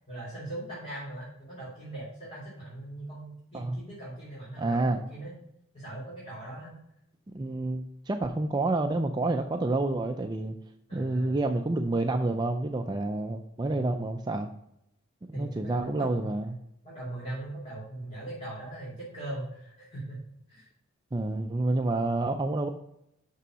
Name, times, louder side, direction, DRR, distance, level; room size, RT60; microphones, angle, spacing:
voice 1, 0.1-5.3 5.7-6.7 10.9-11.4 13.6-14.1 15.3-16.3 16.8-20.2 20.5-20.7, right 1 dB, 30° left, -8 dB, 2.7 m, -40 dB
voice 2, 4.6-5.0 7.3-10.5 10.9-14.5 15.3-16.6 21.1-22.7, right 2 dB, 20° right, 5 dB, 0.4 m, -28 dB
6.2 x 5.6 x 6.1 m, 0.79 s
head